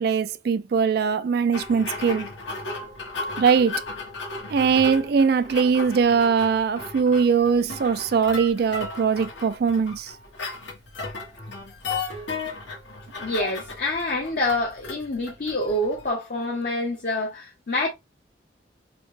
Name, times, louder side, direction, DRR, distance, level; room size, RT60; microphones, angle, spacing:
voice 1, 0.0-2.3 3.4-3.8 4.5-10.1, right 6 dB, 55° right, 0.3 m, -21 dB
sound 1, 1.5-16.1, left 3 dB, 75° left, 1.3 m, -35 dB
voice 2, 13.2-17.9, left 1 dB, 50° left, 0.7 m, -27 dB
4.2 x 2.1 x 3.1 m
head